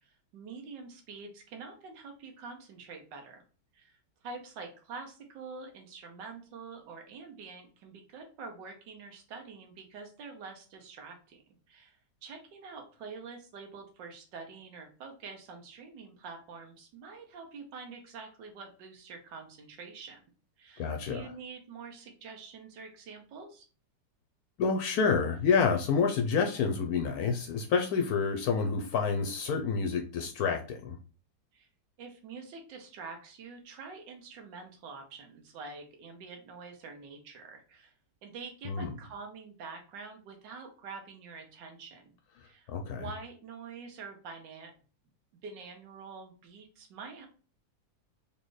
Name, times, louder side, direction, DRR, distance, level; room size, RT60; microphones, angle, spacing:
voice 1, 0.0-3.4 3.7-11.4 11.7-20.2 20.6-23.6 31.5-31.7 32.0-37.9 38.2-42.1 42.4-44.7 45.4-47.3, right 4 dB, 85° right, 3 dB, 1.5 m, -46 dB
voice 2, 20.8-21.2 24.6-31.0 38.6-38.9 42.7-43.0, left 5 dB, 70° left, 4 dB, 1.0 m, -28 dB
4.1 x 3.2 x 3.1 m, 0.37 s
omnidirectional pair, 1.9 m